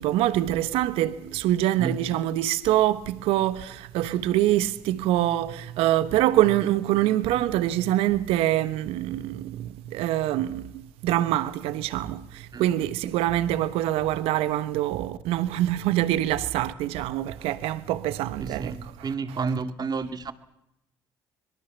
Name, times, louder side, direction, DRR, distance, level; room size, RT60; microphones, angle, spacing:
voice 1, 0.0-18.8, right 14 dB, 75° right, 1.2 m, -25 dB
voice 2, 12.5-12.9 18.4-20.3, right 4 dB, 40° right, 2.2 m, -31 dB
23.0 x 22.5 x 7.2 m
hypercardioid pair, 60°, 10 cm